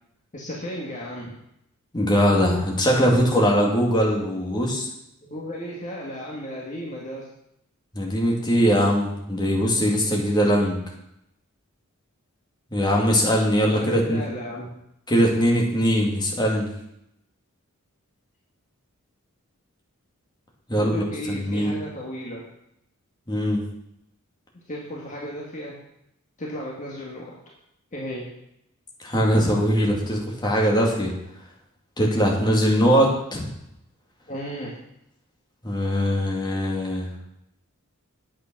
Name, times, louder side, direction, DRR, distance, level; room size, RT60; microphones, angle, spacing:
voice 1, 0.3-1.3 5.2-7.3 13.6-14.7 20.7-22.4 24.7-25.8 26.4-27.4 27.9-28.3 34.3-34.8, equal, 35° left, -3 dB, 1.8 m, -34 dB
voice 2, 1.9-4.9 7.9-10.8 12.7-14.2 15.1-16.7 20.7-21.7 23.3-23.6 29.0-31.1 32.0-33.5 35.6-37.1, equal, 20° left, -2 dB, 2.4 m, -21 dB
9.1 x 8.4 x 6.1 m, 0.79 s
head